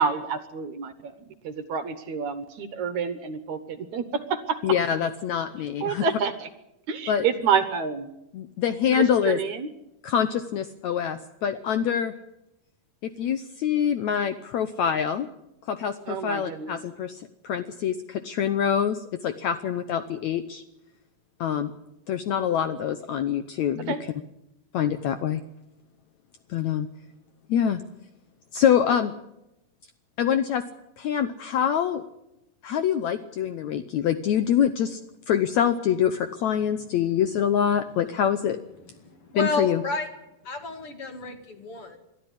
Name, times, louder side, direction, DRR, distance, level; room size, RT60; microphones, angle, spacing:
voice 1, 0.0-4.6 5.8-6.5 6.9-8.1 8.9-9.7 16.1-16.8 23.9-24.0, right 6 dB, 65° right, 11 dB, 2.3 m, -28 dB
voice 2, 4.6-6.0 7.1-7.3 8.3-9.4 10.0-12.1 13.0-15.3 15.7-20.6 21.4-21.7 22.1-23.9 24.7-25.4 26.5-26.9 27.5-27.8 28.5-29.1 30.2-30.6 31.0-32.0 32.6-35.0 35.3-38.6 39.3-39.8, left 9 dB, 70° left, 10 dB, 1.8 m, -25 dB
voice 3, 39.0-40.1 40.4-42.0, left 3 dB, 45° left, 6 dB, 2.6 m, -31 dB
22.5 x 13.0 x 9.9 m, 0.86 s
omnidirectional pair, 4.0 m